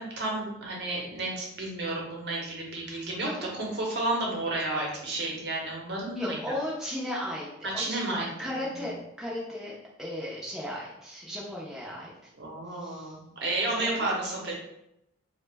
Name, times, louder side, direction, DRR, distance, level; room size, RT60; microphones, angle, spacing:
voice 1, 0.0-3.3 3.5-6.4 7.6-8.8 12.4-14.5, right 2 dB, 55° right, -2 dB, 0.8 m, -32 dB
voice 2, 2.8-3.5 6.1-12.3 12.7-13.1 13.7-14.2, left 1 dB, ahead, -7 dB, 0.5 m, -36 dB
3.0 x 2.1 x 3.3 m, 0.82 s
head